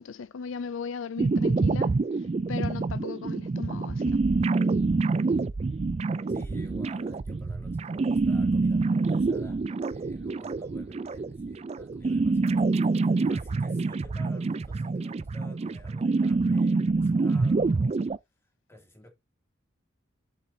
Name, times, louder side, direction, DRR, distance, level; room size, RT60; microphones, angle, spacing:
voice 1, 0.0-2.0 2.5-4.2, left 5 dB, 75° left, 0.4 m, -36 dB
sound 1, 1.2-18.2, right 3 dB, 35° right, 0.3 m, -26 dB
voice 2, 6.3-18.0 18.4-19.1, left 1 dB, 15° left, 2.6 m, -52 dB
7.3 x 7.2 x 2.8 m
head